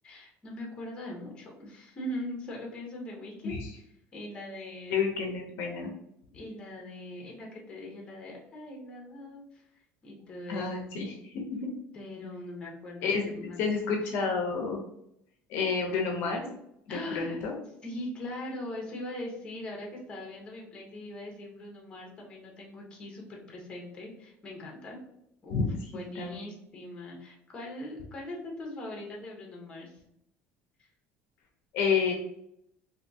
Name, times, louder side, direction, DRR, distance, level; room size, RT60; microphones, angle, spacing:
voice 1, 0.0-3.5 4.1-5.1 6.3-10.8 11.9-13.6 13.9-14.0 16.9-17.4 17.8-25.0 25.4-29.9, left 1 dB, 20° left, 0 dB, 0.7 m, -41 dB
voice 2, 4.9-5.9 10.5-11.7 13.0-13.2 13.6-14.8 15.5-16.5 16.9-17.5 25.5-26.3 31.7-32.1, left 5 dB, 55° left, 1 dB, 0.6 m, -30 dB
3.4 x 2.6 x 2.7 m, 0.76 s
cardioid pair, 180°, 5 cm